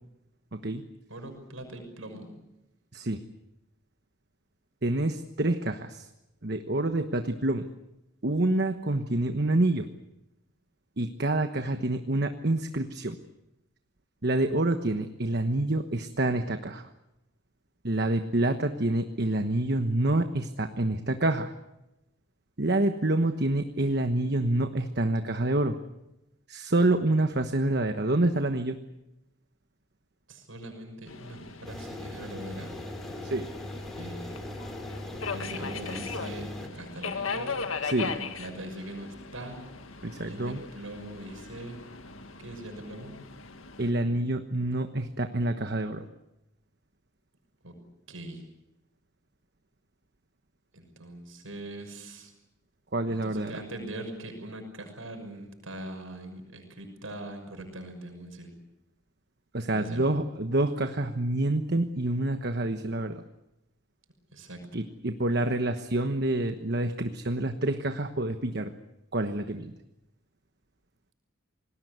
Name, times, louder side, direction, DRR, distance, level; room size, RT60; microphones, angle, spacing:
voice 1, 0.5-0.8 2.9-3.2 4.8-6.1 6.4-7.7 8.2-9.9 11.0-13.2 14.2-16.9 17.8-21.5 22.6-25.8 26.5-28.8 33.2-33.5 37.8-38.1 40.0-40.6 43.8-46.0 52.9-53.5 59.5-63.2 64.7-68.7 69.1-69.7, right 2 dB, 50° right, 7 dB, 1.2 m, -27 dB
voice 2, 1.1-2.3 11.6-11.8 30.3-32.8 34.0-34.3 35.3-36.4 36.7-37.6 38.0-39.6 40.2-41.8 42.4-43.2 47.6-47.7 48.1-48.4 50.7-52.3 53.2-58.5 59.7-60.0 64.3-64.6, right 1 dB, 80° right, 5 dB, 6.3 m, -41 dB
Subway metro underground, 31.1-43.9, left 5 dB, 85° left, 1.9 m, -39 dB
sound 1, 31.6-36.7, left 1 dB, ahead, 2.9 m, -40 dB
28.0 x 20.0 x 8.1 m, 0.92 s
head